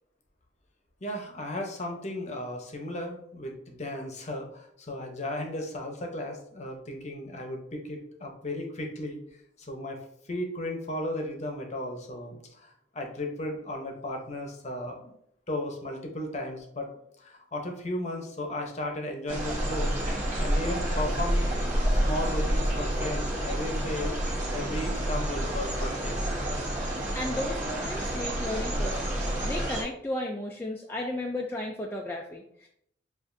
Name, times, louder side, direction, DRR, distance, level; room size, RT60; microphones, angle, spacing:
voice 1, 1.0-9.2 9.6-10.0 10.2-15.1 15.5-16.9 17.2-19.9 20.4-21.5 21.9-24.2 24.5-26.2, left 1 dB, 40° left, 2 dB, 0.8 m, -35 dB
sound 1, 19.3-29.8, right 1 dB, 45° right, 1.4 m, -29 dB
voice 2, 27.1-32.7, left 1 dB, 10° left, -1 dB, 0.4 m, -34 dB
7.0 x 2.5 x 2.6 m, 0.70 s
head